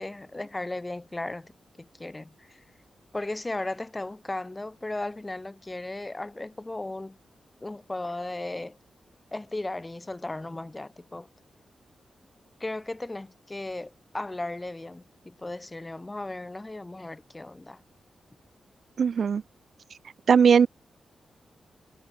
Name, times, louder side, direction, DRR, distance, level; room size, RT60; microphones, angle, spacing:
voice 1, 0.0-2.6 3.1-7.2 7.6-8.8 9.3-11.3 12.6-17.8, left 2 dB, 15° left, 4.0 m, -36 dB
voice 2, 19.0-19.4 20.3-20.7, right 6 dB, 55° right, 1.9 m, -19 dB
wide cardioid pair, 180°, 0 cm